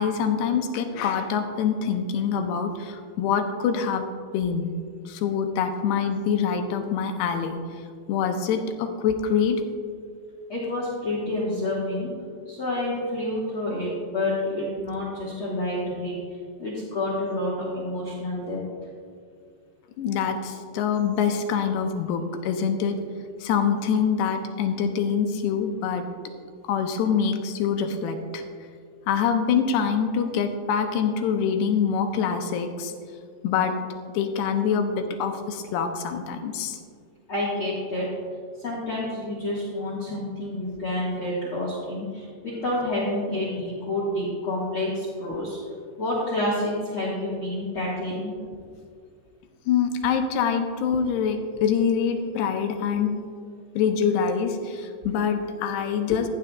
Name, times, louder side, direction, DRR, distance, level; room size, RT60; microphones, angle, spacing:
voice 1, 0.0-4.1 4.3-4.7 5.1-7.6 8.1-9.6 20.0-23.0 23.4-26.1 26.7-28.4 29.1-32.9 33.4-33.8 34.1-36.8 49.7-53.2 53.8-56.3, left 7 dB, 85° left, 6 dB, 2.6 m, -25 dB
voice 2, 10.5-12.1 12.5-16.1 16.6-18.6 37.3-38.0 38.6-45.6 46.0-48.3, left 1 dB, 65° left, -5 dB, 1.3 m, -28 dB
15.0 x 9.3 x 2.3 m, 2.1 s
omnidirectional pair, 4.8 m